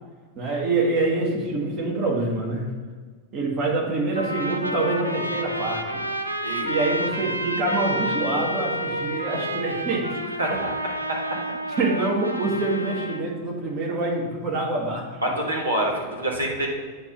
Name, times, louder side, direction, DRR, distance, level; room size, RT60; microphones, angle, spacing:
voice 1, 0.3-2.7 3.3-6.1 6.6-10.2 10.5-10.6 11.8-15.1, right 2 dB, 35° right, -1 dB, 1.6 m, -25 dB
Trumpet, 4.1-13.2, right 1 dB, 90° left, 0.4 m, -30 dB
voice 2, 6.4-6.9 10.4-10.7 11.1-11.2 15.2-16.7, right 1 dB, 75° right, -1 dB, 1.5 m, -26 dB
8.8 x 3.0 x 5.3 m, 1.5 s
figure-of-eight pair, 90°, 0 cm